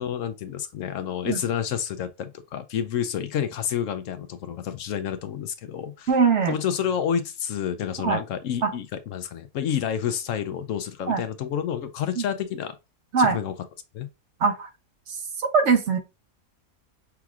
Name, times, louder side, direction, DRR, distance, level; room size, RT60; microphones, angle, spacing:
voice 1, 0.0-6.1 6.5-12.8 13.2-13.5 13.9-14.1, left 9 dB, 70° left, 0.9 m, -29 dB
voice 2, 6.1-6.5 8.0-8.2 8.6-8.7 11.1-11.2 13.1-13.4 14.4-14.7 15.5-16.0, right 5 dB, 60° right, 1.0 m, -21 dB
5.8 x 2.9 x 2.4 m
omnidirectional pair, 1.5 m